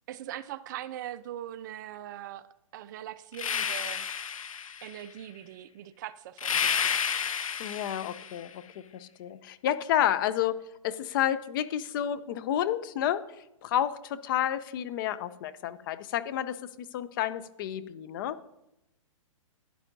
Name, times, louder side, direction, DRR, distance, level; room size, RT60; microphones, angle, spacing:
voice 1, 0.1-2.5 2.7-4.1 4.8-7.1, right 12 dB, 35° right, 14 dB, 0.4 m, -41 dB
sound 1, 3.3-5.0 6.4-8.5, left 7 dB, 80° left, 0.8 m, -31 dB
voice 2, 7.6-8.6 8.9-10.5 10.8-13.2 13.6-18.4, left 11 dB, 40° left, 14 dB, 0.5 m, -30 dB
11.5 x 9.9 x 2.6 m, 0.88 s
hypercardioid pair, 140°, 17 cm